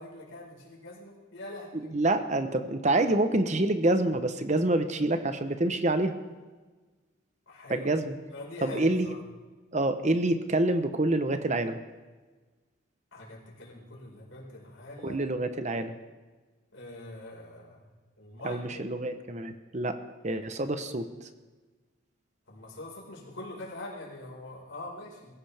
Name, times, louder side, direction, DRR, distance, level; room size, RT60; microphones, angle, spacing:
voice 1, 0.0-1.9 7.5-7.9 8.3-9.2 13.1-15.2 16.7-17.8 18.2-18.9 22.5-25.3, left 2 dB, 70° left, -3 dB, 5.0 m, -43 dB
voice 2, 1.9-6.1 7.7-8.2 8.6-9.1 9.7-11.8 15.0-15.9 18.4-20.0 20.2-21.1, right 2 dB, 35° right, 9 dB, 0.9 m, -27 dB
22.5 x 16.0 x 3.5 m, 1.3 s
head